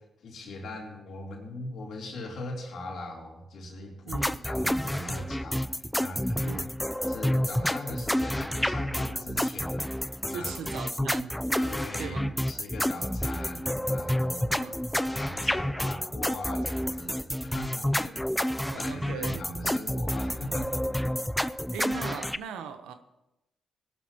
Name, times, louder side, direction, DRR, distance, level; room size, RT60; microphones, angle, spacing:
voice 1, 0.0-6.6 7.0-10.6 11.6-12.2 12.5-18.2 18.7-21.3, left 2 dB, 70° left, -1 dB, 3.3 m, -40 dB
sound 1, 4.1-22.4, equal, 5° left, 0.5 m, -29 dB
voice 2, 4.1-4.4 6.4-6.7 10.3-11.4 12.0-12.3 14.5-14.8 18.7-19.4 21.7-22.9, right 7 dB, 85° right, 9 dB, 0.9 m, -39 dB
20.0 x 11.5 x 3.0 m, 0.93 s
supercardioid pair, 55°, 0 cm